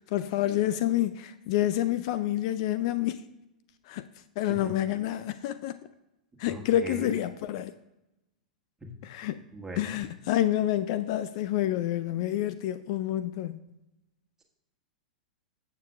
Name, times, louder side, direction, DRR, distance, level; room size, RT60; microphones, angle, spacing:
voice 1, 0.1-3.2 3.9-4.0 4.4-5.8 6.4-7.7 9.0-9.4 9.8-13.6, left 13 dB, 50° left, 0.4 m, -28 dB
voice 2, 6.4-7.1 8.8-8.9 9.5-10.0, right 2 dB, 10° right, 1.6 m, -40 dB
15.0 x 6.8 x 2.4 m
figure-of-eight pair, 95°, 4 cm